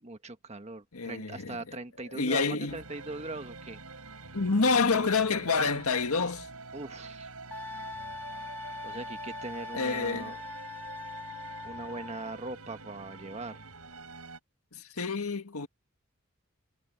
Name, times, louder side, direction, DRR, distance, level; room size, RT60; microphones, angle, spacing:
voice 1, 0.0-3.8 6.7-7.3 8.8-10.4 11.6-13.6, right 2 dB, 30° right, 1.5 m, -41 dB
voice 2, 0.9-1.6 2.1-2.8 4.3-6.5 9.7-10.3 14.7-15.7, left 4 dB, 85° left, 1.7 m, -28 dB
sound 1, 2.7-14.4, right 3 dB, 85° right, 6.8 m, -47 dB
Wind instrument woodwind instrument, 7.5-12.4, left 3 dB, 10° left, 0.8 m, -41 dB
head